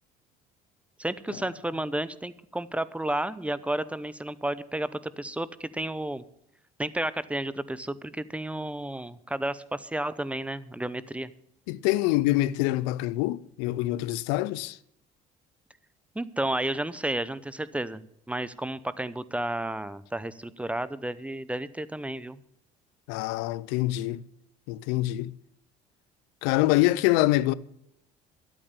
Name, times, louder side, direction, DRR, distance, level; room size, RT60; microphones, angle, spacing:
voice 1, 1.0-6.2 6.8-11.3 16.1-22.4, right 1 dB, 5° right, 0.7 m, -32 dB
voice 2, 11.7-14.8 23.1-24.2 24.7-25.3 26.4-27.5, left 17 dB, 85° left, 0.5 m, -25 dB
12.0 x 8.9 x 6.7 m
supercardioid pair, 85°, 17 cm